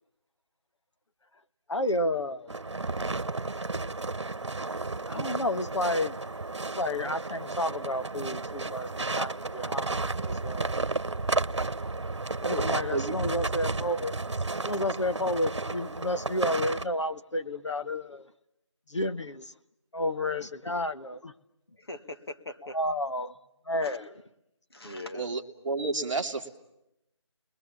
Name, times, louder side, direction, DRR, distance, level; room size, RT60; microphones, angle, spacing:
voice 1, 1.7-2.5 5.1-6.2 6.8-10.8 12.4-14.1 14.6-18.3 18.9-19.5 19.9-21.3 22.7-23.3 23.7-24.2, left 1 dB, 70° left, 1.4 m, -31 dB
sound 1, 2.5-16.9, right 3 dB, 65° right, 1.1 m, -32 dB
voice 2, 20.4-20.8 21.7-22.8 23.8-24.0 24.7-25.3, left 1 dB, 55° left, 1.9 m, -42 dB
voice 3, 25.1-26.5, right 3 dB, 10° right, 1.0 m, -31 dB
30.0 x 21.5 x 7.2 m
figure-of-eight pair, 175°, 16 cm